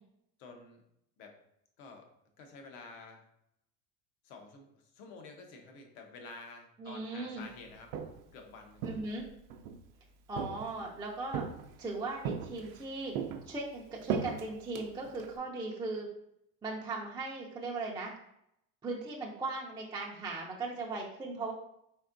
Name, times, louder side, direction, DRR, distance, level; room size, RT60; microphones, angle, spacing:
voice 1, 0.4-0.8 1.2-1.4 1.8-2.1 2.4-3.3 4.2-7.9 8.3-9.0, left 3 dB, 70° left, 3 dB, 1.0 m, -50 dB
voice 2, 6.8-7.4 8.8-9.3 10.3-11.5 11.8-13.1 13.5-16.1 16.6-18.1 18.8-21.5, right 3 dB, 10° right, -3 dB, 0.5 m, -38 dB
Walk footsteps, 7.7-8.3 8.8-9.8 10.4-10.9 11.3-11.9 12.2-12.8 13.1-15.4, right 7 dB, 85° right, 0.6 m, -37 dB
4.4 x 3.5 x 2.5 m, 0.78 s
supercardioid pair, 105°, 41 cm